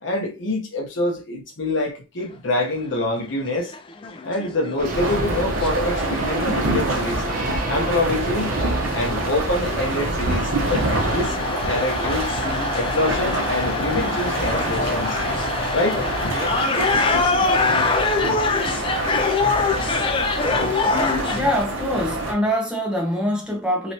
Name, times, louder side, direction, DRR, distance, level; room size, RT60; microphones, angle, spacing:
voice 1, 0.0-3.7 4.2-7.2 7.7-8.6 8.9-12.3 12.7-15.2 15.7-16.3, left 2 dB, 65° left, 0.9 m, -26 dB
sound 1, 2.9-3.0 3.3-3.4 3.7-21.6, left 4 dB, 25° left, 0.3 m, -25 dB
sound 2, 4.8-11.2, right 2 dB, 40° right, 0.6 m, -30 dB
sound 3, 4.9-22.3, right 2 dB, 70° right, 0.8 m, -26 dB
voice 2, 21.3-23.9, equal, 5° right, 0.8 m, -23 dB
3.0 x 3.0 x 2.8 m
head